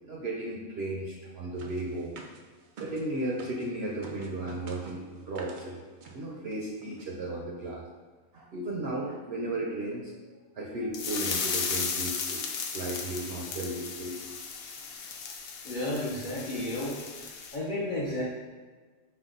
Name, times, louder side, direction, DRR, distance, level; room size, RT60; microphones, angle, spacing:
voice 1, 0.0-2.1 2.8-7.8 8.3-10.1 10.6-12.4 12.7-14.3 15.0-15.1, right 1 dB, 60° right, -2 dB, 0.7 m, -35 dB
sound 1, 1.6-3.7 4.0-5.7 6.0-6.2 6.5-6.6 6.8-7.1, right 4 dB, 90° right, 0.4 m, -47 dB
sound 2, 10.9-17.6, left 5 dB, 80° left, 1.0 m, -35 dB
voice 2, 15.6-18.2, left 1 dB, 45° left, -6 dB, 0.6 m, -33 dB
5.5 x 2.3 x 3.8 m, 1.4 s
omnidirectional pair, 1.4 m